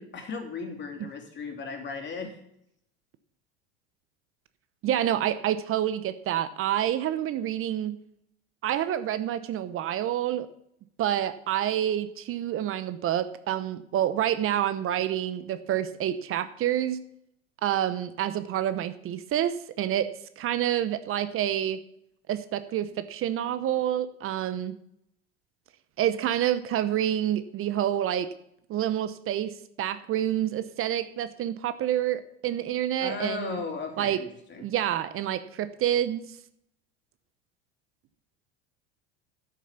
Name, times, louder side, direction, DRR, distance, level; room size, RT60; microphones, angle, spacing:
voice 1, 0.0-2.4 33.0-34.7, left 4 dB, 35° left, 4 dB, 3.1 m, -36 dB
voice 2, 4.8-8.0 8.6-10.5 11.0-17.0 17.6-20.1 20.4-21.8 22.3-24.7 26.0-28.3 28.7-33.6 34.0-34.2 34.6-36.3, right 11 dB, 45° right, 13 dB, 0.9 m, -28 dB
10.5 x 8.4 x 5.9 m, 0.73 s
hypercardioid pair, 80°, 32 cm